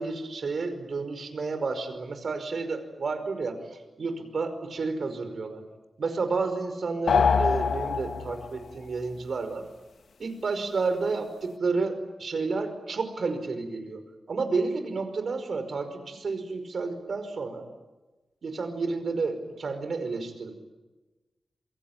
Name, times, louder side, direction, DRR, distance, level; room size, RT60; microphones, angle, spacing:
voice 1, 0.0-5.6 6.0-9.7 10.2-14.0 14.3-17.7 18.4-20.5, right 4 dB, 60° right, 8 dB, 5.1 m, -31 dB
sound 1, 7.1-8.6, left 5 dB, 80° left, 1.5 m, -24 dB
27.0 x 24.5 x 8.9 m, 1.2 s
wide cardioid pair, 115°, 0 cm